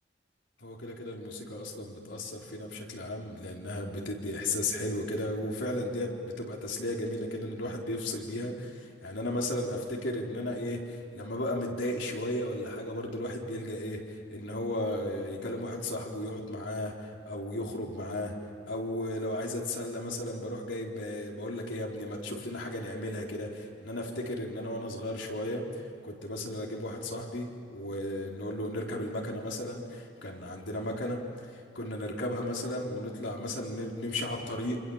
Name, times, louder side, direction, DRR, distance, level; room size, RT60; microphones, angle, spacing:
voice 1, 0.6-18.4 18.7-34.8, left 1 dB, 75° left, -1 dB, 4.2 m, -35 dB
28.0 x 27.0 x 7.4 m, 2.3 s
head